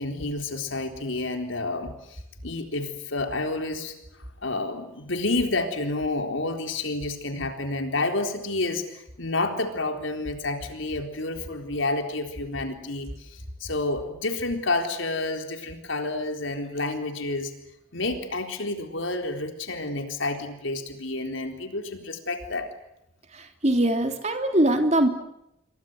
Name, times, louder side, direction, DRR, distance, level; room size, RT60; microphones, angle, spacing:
voice 1, 0.0-3.9 4.4-17.5 17.9-22.7, left 2 dB, 75° left, 5 dB, 4.0 m, -29 dB
voice 2, 23.3-25.1, right 1 dB, 35° right, 5 dB, 3.4 m, -22 dB
28.5 x 23.5 x 8.1 m, 0.83 s
head